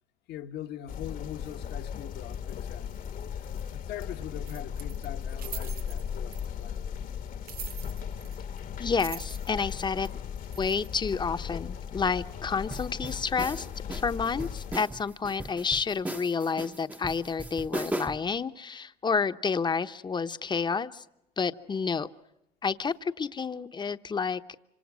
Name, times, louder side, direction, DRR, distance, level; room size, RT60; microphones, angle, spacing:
voice 1, 0.3-2.9 3.3-3.4 3.7-6.8, left 10 dB, 75° left, 1.5 m, -42 dB
sound 1, 0.9-14.8, left 8 dB, 55° left, 1.2 m, -37 dB
sound 2, 4.5-6.7 7.5-8.6 8.8-11.2, right 9 dB, 60° right, 1.1 m, -44 dB
voice 2, 8.8-10.1 10.6-21.0 21.4-22.1 22.6-24.4, left 5 dB, 25° left, 0.9 m, -30 dB
sound 3, 12.7-18.3, right 1 dB, 10° right, 0.9 m, -37 dB
26.5 x 26.5 x 6.2 m
cardioid pair, 110°, 17 cm